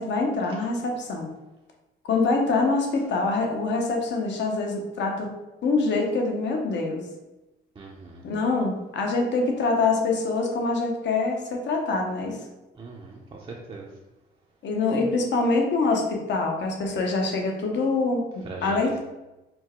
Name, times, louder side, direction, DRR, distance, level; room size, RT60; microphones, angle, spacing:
voice 1, 0.0-1.3 2.0-5.3 5.6-7.0 8.2-12.4 14.6-18.3 18.6-19.0, left 3 dB, 65° left, 1 dB, 0.9 m, -25 dB
voice 2, 7.8-8.2 12.7-13.9 18.4-19.0, right 3 dB, 25° right, -1 dB, 0.6 m, -40 dB
4.5 x 2.2 x 4.3 m, 1.0 s
cardioid pair, 90°, 20 cm